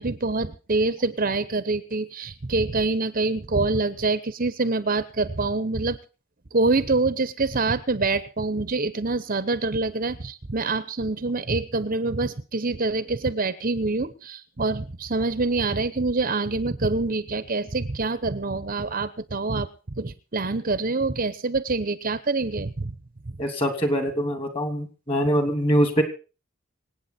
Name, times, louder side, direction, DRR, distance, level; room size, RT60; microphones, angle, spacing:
voice 1, 0.0-6.0 6.5-22.9 23.2-23.4, right 3 dB, 40° right, 14 dB, 0.9 m, -26 dB
voice 2, 23.4-26.0, equal, 25° left, 7 dB, 2.9 m, -23 dB
26.0 x 8.8 x 4.3 m, 0.34 s
head